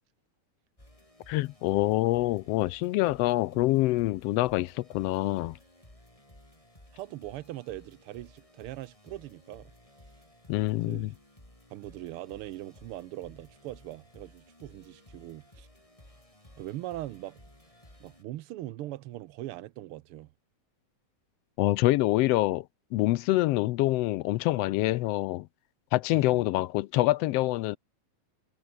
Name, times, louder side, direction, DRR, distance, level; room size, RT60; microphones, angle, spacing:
sound 1, 0.8-18.2, left 1 dB, 10° left, 6.4 m, -56 dB
voice 1, 1.3-5.6 10.5-11.1 21.6-22.6 22.9-25.5 25.9-27.8, left 17 dB, 80° left, 1.4 m, -26 dB
voice 2, 6.9-9.7 10.8-11.1 11.7-15.7 16.6-17.4 18.0-20.3 26.1-26.4, right 15 dB, 85° right, 1.2 m, -41 dB
omnidirectional pair, 3.3 m